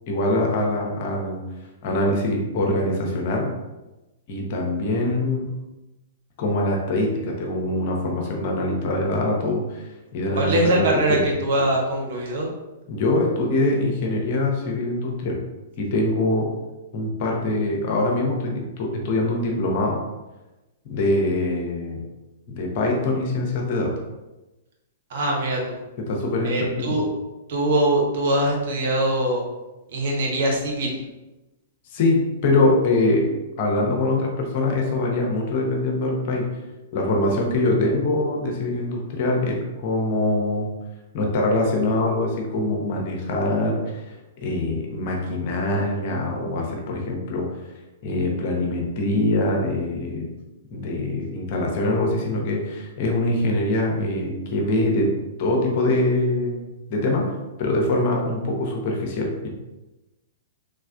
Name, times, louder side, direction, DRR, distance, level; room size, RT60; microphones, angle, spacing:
voice 1, 0.1-1.4 1.8-3.5 4.3-5.5 6.4-11.2 12.9-15.4 15.8-16.5 16.9-20.0 20.8-22.0 22.5-24.0 26.0-27.0 31.9-33.3 33.6-36.5 36.9-40.7 41.1-47.6 48.0-50.3 50.7-56.6 56.9-57.3 57.6-59.5, left 2 dB, 45° left, 0 dB, 0.7 m, -23 dB
voice 2, 10.4-12.5 25.1-25.8 26.4-27.1 27.5-29.4 29.9-30.9, right 1 dB, 55° right, 0 dB, 0.9 m, -22 dB
3.2 x 3.2 x 2.4 m, 1.1 s
figure-of-eight pair, 105°, 0 cm